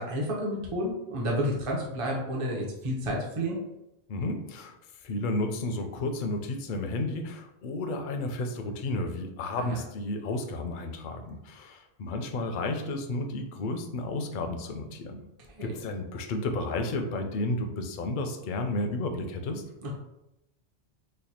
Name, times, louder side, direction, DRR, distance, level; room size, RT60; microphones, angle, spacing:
voice 1, 0.0-3.6 9.6-9.8 15.5-15.7 19.8-19.9, equal, 35° right, -2 dB, 0.6 m, -30 dB
voice 2, 4.1-4.8 5.0-15.2 15.6-19.6, left 2 dB, 60° left, 5 dB, 0.6 m, -32 dB
3.3 x 2.2 x 4.2 m, 0.88 s
omnidirectional pair, 1.1 m